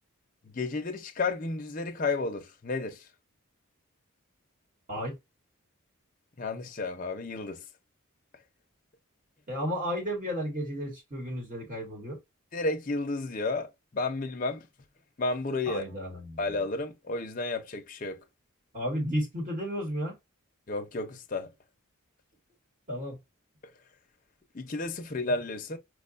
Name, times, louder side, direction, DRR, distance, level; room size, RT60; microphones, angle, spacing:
voice 1, 0.4-3.1 6.4-7.6 12.5-14.7 15.2-15.8 16.4-18.2 20.7-21.5 24.5-25.8, left 3 dB, 35° left, 0.6 m, -32 dB
voice 2, 9.5-12.2 15.6-16.5 18.7-20.2 22.9-23.2, equal, 35° right, 1.1 m, -33 dB
4.7 x 2.2 x 2.5 m
head